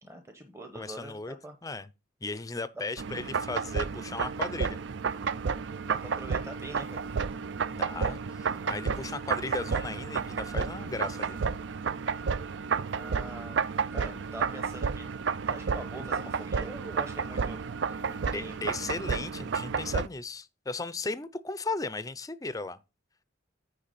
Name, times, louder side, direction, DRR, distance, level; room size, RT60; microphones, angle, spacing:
voice 1, 0.0-1.6 5.9-7.0 12.9-17.6 17.9-18.6, right 2 dB, 15° right, 0.9 m, -44 dB
voice 2, 0.7-1.4 1.6-1.9 2.2-4.8 7.7-11.4 18.3-22.8, left 3 dB, 20° left, 0.5 m, -36 dB
sound 1, 3.0-20.1, right 5 dB, 65° right, 0.4 m, -31 dB
9.8 x 3.3 x 6.8 m
head